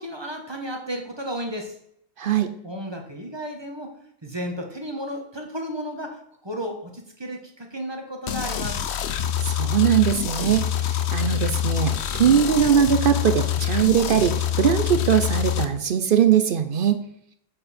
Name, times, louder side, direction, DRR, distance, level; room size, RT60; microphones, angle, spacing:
voice 1, 0.0-1.7 2.6-3.9 4.2-8.8, equal, 25° right, 3 dB, 1.2 m, -33 dB
voice 2, 2.2-2.5 9.4-17.0, right 8 dB, 60° right, 10 dB, 0.7 m, -21 dB
sound 1, 8.3-15.7, left 10 dB, 75° left, 1.0 m, -25 dB
7.6 x 6.7 x 4.3 m, 0.72 s
omnidirectional pair, 1.1 m